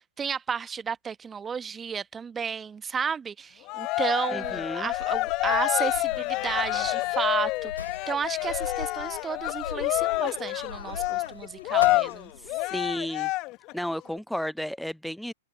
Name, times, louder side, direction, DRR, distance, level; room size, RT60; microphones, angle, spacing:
voice 1, 0.0-12.3, right 6 dB, 15° right, 1.0 m, -32 dB
Cheering, 3.7-13.7, left 21 dB, 40° left, 0.7 m, -28 dB
voice 2, 4.3-4.9 12.7-13.3 13.7-15.3, equal, ahead, 0.4 m, -32 dB
Sliding door, 4.4-12.9, left 4 dB, 85° left, 3.5 m, -42 dB
open air
hypercardioid pair, 110°, 0 cm